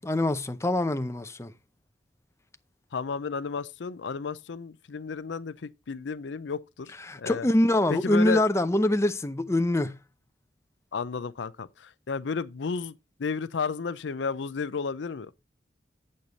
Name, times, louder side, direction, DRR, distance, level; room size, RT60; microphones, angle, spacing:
voice 1, 0.0-1.5 7.0-9.9, left 1 dB, 15° left, 0.6 m, -24 dB
voice 2, 2.9-6.9 7.2-7.5 7.9-8.4 10.9-12.9 13.2-15.3, left 5 dB, 90° left, 0.5 m, -32 dB
8.8 x 6.5 x 4.0 m
head